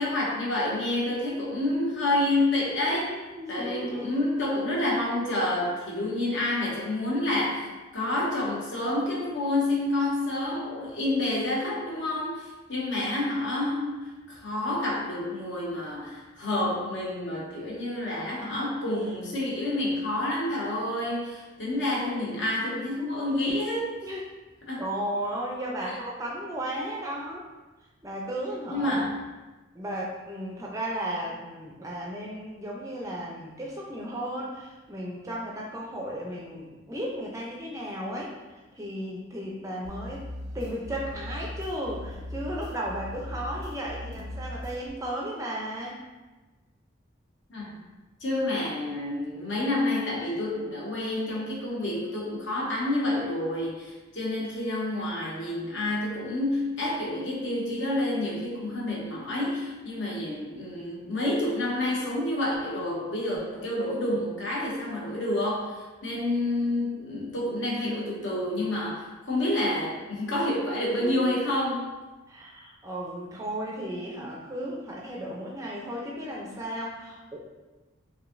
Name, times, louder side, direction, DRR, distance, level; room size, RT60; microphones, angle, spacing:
voice 1, 0.0-3.1 3.5-7.7 7.9-23.9 24.7-24.8 25.8-26.0 28.7-29.2 47.5-47.8 48.2-71.9, left 1 dB, 65° left, -4 dB, 1.0 m, -29 dB
voice 2, 3.3-4.2 24.0-24.2 24.8-27.4 28.0-29.1 29.7-40.3 40.5-46.0 70.9-71.5 72.3-77.4, right 1 dB, 15° right, -3 dB, 0.5 m, -35 dB
sound 1, 39.8-44.9, equal, 85° right, 0.8 m, -39 dB
4.8 x 2.7 x 2.5 m, 1.2 s
head